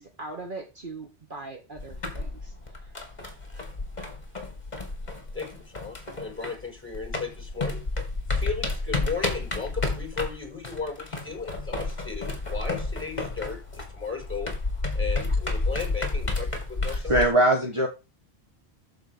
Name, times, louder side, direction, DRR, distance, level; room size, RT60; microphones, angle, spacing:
voice 1, 0.0-2.5, right 3 dB, 55° right, 1.7 m, -40 dB
sound 1, 1.8-6.7 6.9-17.3, left 3 dB, 45° left, 2.6 m, -31 dB
voice 2, 5.3-7.8 8.3-14.6 14.9-17.5, left 5 dB, 10° left, 5.3 m, -36 dB
voice 3, 17.1-17.9, right 1 dB, 30° right, 1.6 m, -20 dB
14.0 x 4.7 x 6.5 m
omnidirectional pair, 1.1 m